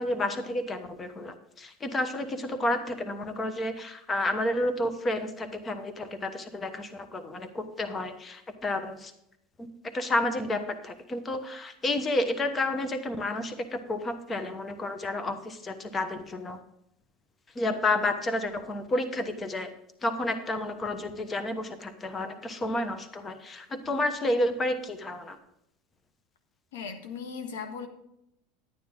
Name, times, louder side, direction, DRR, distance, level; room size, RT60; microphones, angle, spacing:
voice 1, 0.0-9.1 9.6-9.7 9.9-16.6 17.5-19.7 20.0-25.4, left 1 dB, 20° left, 9 dB, 1.1 m, -30 dB
voice 2, 26.7-27.9, left 6 dB, 85° left, 7 dB, 1.5 m, -37 dB
11.0 x 9.5 x 3.7 m, 0.77 s
supercardioid pair, 115°, 0 cm